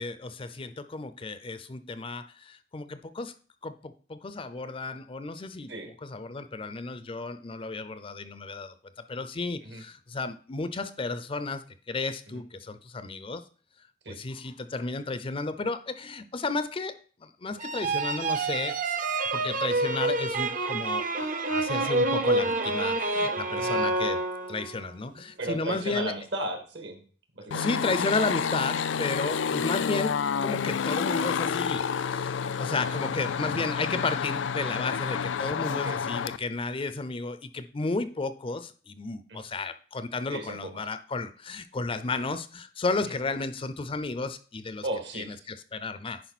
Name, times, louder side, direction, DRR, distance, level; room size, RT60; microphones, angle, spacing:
voice 1, 0.0-3.3 3.6-5.7 6.0-8.7 9.1-13.4 14.2-19.0 19.3-24.2 24.5-26.1 27.5-44.8 45.1-46.2, left 3 dB, 30° left, 0.5 m, -33 dB
sound 1, 17.6-24.8, right 2 dB, 45° right, 0.8 m, -27 dB
voice 2, 25.4-27.0 27.3-27.7 33.4-33.7 35.7-36.0 39.3-39.4 40.3-40.7 43.0-43.1 44.8-45.5, right 1 dB, 65° right, 1.8 m, -35 dB
sound 2, 27.5-36.4, left 6 dB, 85° left, 0.4 m, -29 dB
10.5 x 4.8 x 4.2 m
head